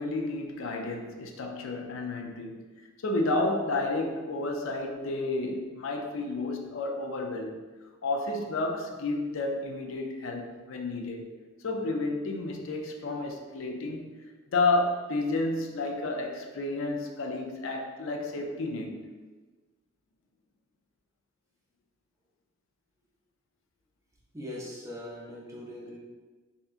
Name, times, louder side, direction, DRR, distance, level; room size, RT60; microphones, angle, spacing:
voice 1, 0.0-2.6 3.0-7.6 8.0-11.3 11.6-14.0 14.5-19.0, left 2 dB, 70° left, 2 dB, 0.4 m, -31 dB
voice 2, 24.3-26.0, left 1 dB, 15° right, -4 dB, 0.5 m, -40 dB
3.6 x 2.7 x 2.4 m, 1.3 s
head